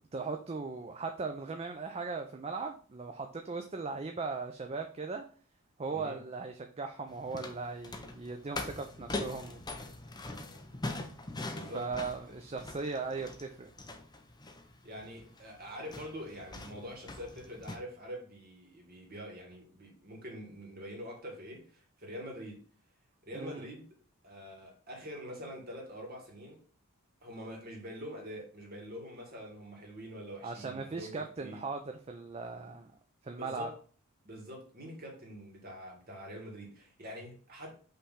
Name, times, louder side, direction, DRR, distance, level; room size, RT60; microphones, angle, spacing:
voice 1, 0.1-5.2 5.8-9.6 11.7-13.7 23.4-23.6 30.4-32.9 33.2-33.7, right 4 dB, 25° right, 0.4 m, -38 dB
sound 1, 7.1-17.8, left 2 dB, 20° left, 0.7 m, -42 dB
voice 2, 11.5-11.9 12.3-12.4 14.8-22.6 23.2-24.0 24.2-26.6 27.2-31.6 33.3-33.7 34.2-37.7, equal, 45° right, 2.1 m, -45 dB
5.6 x 3.4 x 5.6 m
head